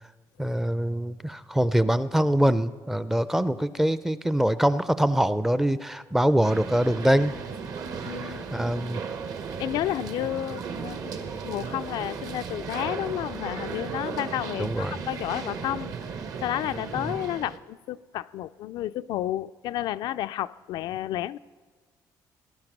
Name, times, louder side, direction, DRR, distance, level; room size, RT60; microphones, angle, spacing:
voice 1, 0.4-7.3 8.2-9.0 14.6-15.0 17.0-17.1, right 1 dB, 5° right, 0.4 m, -24 dB
sound 1, 6.4-17.6, right 6 dB, 55° right, 1.1 m, -35 dB
voice 2, 8.1-8.6 9.6-15.9 16.4-21.4, left 13 dB, 80° left, 0.4 m, -31 dB
19.0 x 11.5 x 6.0 m
cardioid pair, 150°, 7 cm